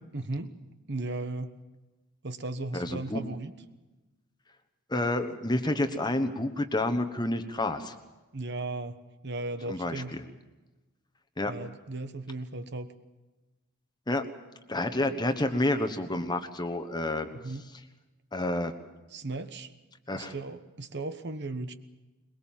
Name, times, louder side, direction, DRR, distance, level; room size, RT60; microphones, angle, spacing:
voice 1, 0.1-0.6 0.9-1.5 2.2-3.5 8.3-10.1 11.5-12.9 17.3-17.6 19.1-19.7 20.1-21.7, right 2 dB, 50° right, 10 dB, 1.2 m, -36 dB
voice 2, 2.7-3.2 4.9-7.9 9.7-10.2 11.4-11.5 14.1-14.3 14.7-17.3 18.3-18.7 20.1-20.3, left 1 dB, 20° left, 8 dB, 1.2 m, -29 dB
22.5 x 22.0 x 7.4 m, 1.1 s
head